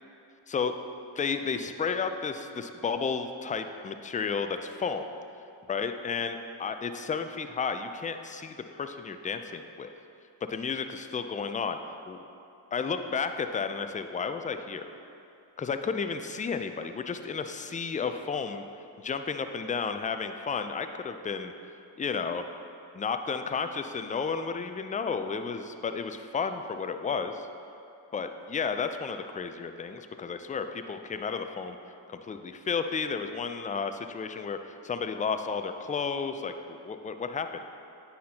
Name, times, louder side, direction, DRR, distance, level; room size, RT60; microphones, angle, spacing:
voice 1, 1.2-5.1 5.7-9.9 10.5-11.8 12.1-12.2 12.7-14.9 15.6-18.6 19.0-21.5 22.0-22.5 22.9-27.5 28.1-31.8 32.1-37.6, left 5 dB, 20° left, 8 dB, 0.3 m, -32 dB
9.2 x 4.2 x 2.8 m, 2.6 s
supercardioid pair, 40°, 46 cm